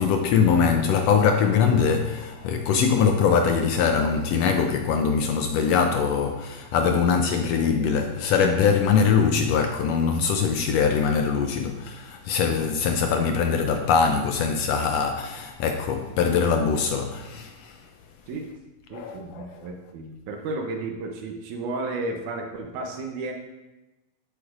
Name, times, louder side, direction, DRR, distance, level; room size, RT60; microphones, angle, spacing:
voice 1, 0.0-17.8 18.9-19.7, left 6 dB, 80° left, 1.5 m, -22 dB
voice 2, 18.9-23.3, right 3 dB, 80° right, 2.2 m, -33 dB
11.5 x 7.9 x 2.5 m
omnidirectional pair, 3.5 m